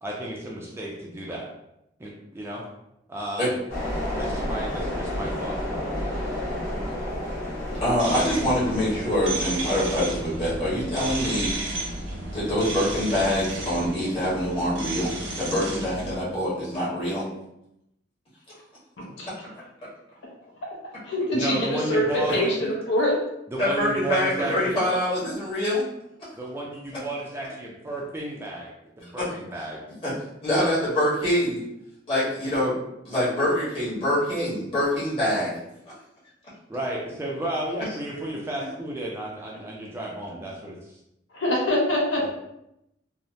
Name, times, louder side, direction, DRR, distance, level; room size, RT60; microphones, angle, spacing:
voice 1, 0.0-1.5 2.0-2.6 3.1-3.5 4.2-6.2 21.3-22.5 23.5-24.7 26.3-28.7 29.0-29.8 36.7-40.8 42.2-42.3, right 1 dB, 15° right, -3 dB, 0.3 m, -32 dB
sound 1, 3.7-13.9, left 1 dB, 50° left, 1.5 m, -33 dB
voice 2, 7.8-11.5 12.3-17.2 22.3-22.4 23.6-25.8 30.0-30.1 30.4-31.6 32.1-35.5, left 1 dB, 30° left, -9 dB, 1.3 m, -25 dB
sound 2, 8.0-16.2, right 2 dB, 70° right, 0.7 m, -33 dB
voice 3, 21.0-23.2 41.3-42.3, left 1 dB, 75° left, -2 dB, 0.6 m, -24 dB
3.0 x 2.0 x 2.6 m, 0.84 s
head